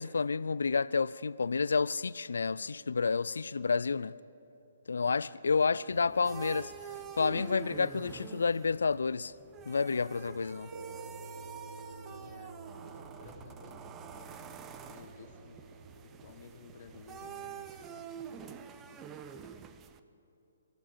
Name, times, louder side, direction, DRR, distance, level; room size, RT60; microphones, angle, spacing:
voice 1, 0.0-4.1 4.9-6.7 7.2-9.3 9.7-10.7, left 4 dB, 70° left, 0.4 m, -30 dB
voice 2, 3.7-4.1 4.9-6.3 12.0-12.6 13.0-14.5 14.9-15.6 16.0-18.6, left 6 dB, 50° left, 1.8 m, -55 dB
sound 1, 5.9-20.0, right 8 dB, 20° right, 0.8 m, -47 dB
sound 2, 10.7-19.5, right 2 dB, 80° right, 1.1 m, -50 dB
24.0 x 15.0 x 7.3 m
figure-of-eight pair, 135°, 0 cm